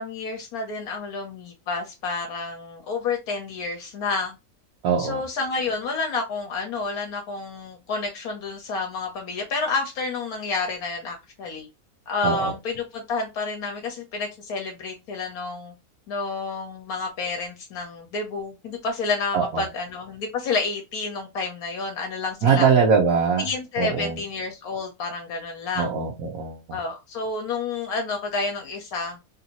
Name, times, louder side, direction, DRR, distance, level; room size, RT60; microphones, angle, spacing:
voice 1, 0.0-4.4 5.0-11.7 12.1-15.7 16.1-22.7 23.4-26.0 26.7-29.2, left 4 dB, 75° left, 1.2 m, -29 dB
voice 2, 4.8-5.2 12.2-12.5 19.3-19.6 22.4-23.5 23.8-24.2 25.8-26.8, right 6 dB, 75° right, 1.2 m, -22 dB
3.2 x 2.6 x 2.8 m
omnidirectional pair, 1.6 m